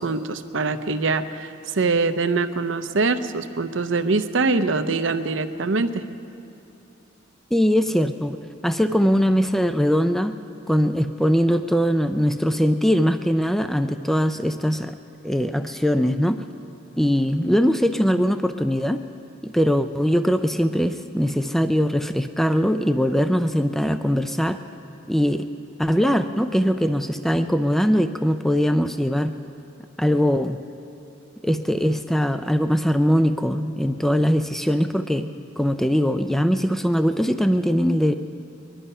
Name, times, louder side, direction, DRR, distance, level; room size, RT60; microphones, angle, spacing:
voice 1, 0.0-6.0, right 3 dB, 75° right, 10 dB, 0.7 m, -23 dB
voice 2, 7.5-8.4 8.6-10.3 10.7-14.9 15.2-16.4 17.0-19.0 19.4-24.6 25.1-25.5 25.8-29.3 30.0-30.6 31.4-35.3 35.6-38.1, equal, ahead, 9 dB, 0.3 m, -21 dB
22.0 x 11.5 x 5.5 m, 2.8 s
head